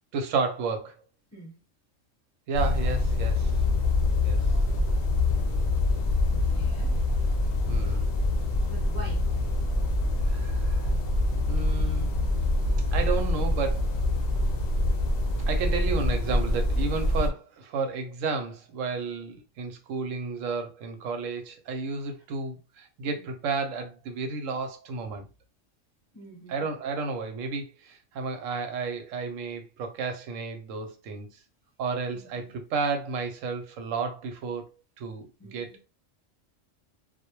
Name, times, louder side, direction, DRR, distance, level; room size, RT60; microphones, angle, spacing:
voice 1, 0.1-1.0 2.5-3.6 4.2-4.4 7.7-8.1 10.3-10.8 11.4-12.1 12.9-13.9 15.5-25.2 26.5-31.3 31.8-34.7 35.0-35.9, right 4 dB, 85° right, 1.0 m, -32 dB
sound 1, 2.5-17.3, left 2 dB, 60° left, 0.7 m, -25 dB
voice 2, 6.3-7.0 8.7-9.2 23.0-23.3 26.1-26.7 32.1-32.5 35.4-35.8, right 3 dB, 15° left, 1.0 m, -46 dB
2.2 x 2.1 x 2.9 m
omnidirectional pair, 1.3 m